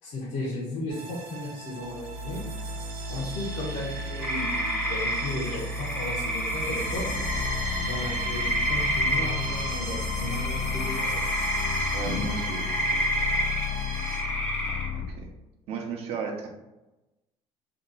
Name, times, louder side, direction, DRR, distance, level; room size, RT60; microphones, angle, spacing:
voice 1, 0.0-2.4 3.1-7.1 7.8-11.5 12.1-12.2 12.9-13.3, left 2 dB, 65° left, -5 dB, 0.8 m, -35 dB
sound 1, 0.9-14.2, right 2 dB, 90° right, 0.8 m, -35 dB
sound 2, 4.2-14.9, equal, 10° left, 0.6 m, -30 dB
sound 3, 6.9-15.2, left 10 dB, 85° left, 0.4 m, -34 dB
voice 2, 11.9-12.6 14.7-15.3 15.7-16.5, right 4 dB, 55° right, 2 dB, 0.7 m, -34 dB
2.9 x 2.4 x 3.7 m, 1.0 s
cardioid pair, 160°, 12 cm